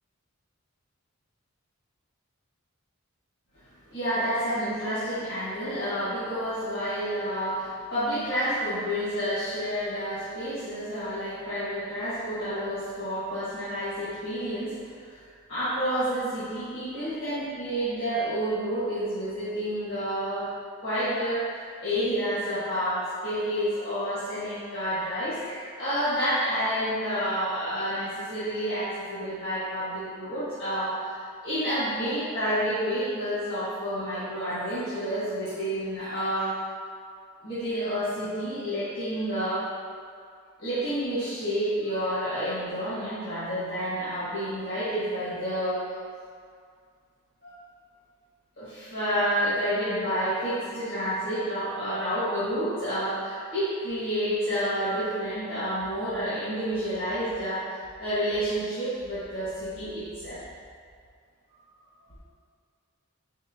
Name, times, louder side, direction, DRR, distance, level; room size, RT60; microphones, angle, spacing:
voice 1, 3.9-14.8 15.1-15.2 15.5-20.5 20.8-31.2 31.4-36.6 37.4-39.7 40.6-45.8 47.4-47.5 48.6-60.4, equal, 65° left, -14 dB, 1.4 m, -29 dB
5.1 x 3.1 x 2.7 m, 2.2 s
head